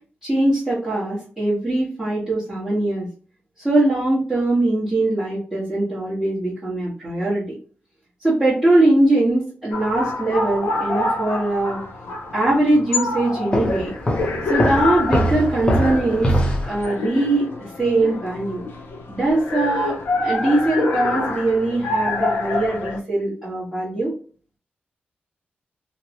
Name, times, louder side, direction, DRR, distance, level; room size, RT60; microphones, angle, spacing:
voice 1, 0.2-3.1 3.6-7.4 8.2-11.8 12.3-13.9 14.5-16.3 16.6-18.7 19.1-24.1, right 2 dB, 10° right, -10 dB, 1.1 m, -21 dB
sound 1, 9.7-23.0, left 2 dB, 75° left, 0.5 m, -27 dB
Walk footsteps, 13.5-16.8, equal, 25° left, 0.6 m, -22 dB
3.0 x 2.0 x 2.8 m, 0.42 s
wide cardioid pair, 125°, 4 cm